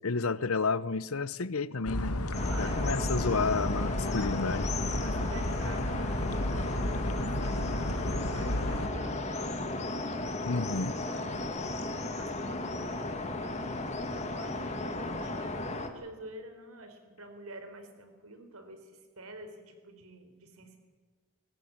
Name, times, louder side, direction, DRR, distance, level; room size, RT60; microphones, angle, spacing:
voice 1, 0.0-2.2 2.6-4.9 10.4-11.0, left 4 dB, 70° left, 0.8 m, -31 dB
sound 1, 1.8-8.9, left 1 dB, 90° left, 2.1 m, -32 dB
sound 2, 2.3-15.9, left 2 dB, 30° left, 2.1 m, -35 dB
voice 2, 2.4-4.4 4.9-9.7 10.5-10.8 11.1-13.9 14.3-20.8, right 2 dB, 75° right, 4.3 m, -49 dB
22.0 x 19.0 x 8.8 m
head